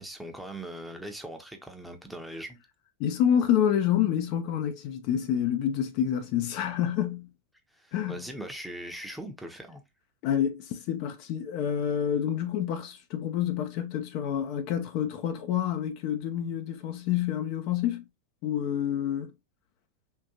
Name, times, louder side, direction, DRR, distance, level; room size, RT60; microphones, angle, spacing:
voice 1, 0.0-2.6 7.7-9.8, right 1 dB, ahead, 0.7 m, -40 dB
voice 2, 3.0-7.3 7.9-8.2 10.2-18.0 18.4-19.3, left 9 dB, 45° left, 0.5 m, -28 dB
3.6 x 2.6 x 2.7 m
figure-of-eight pair, 90°, 0 cm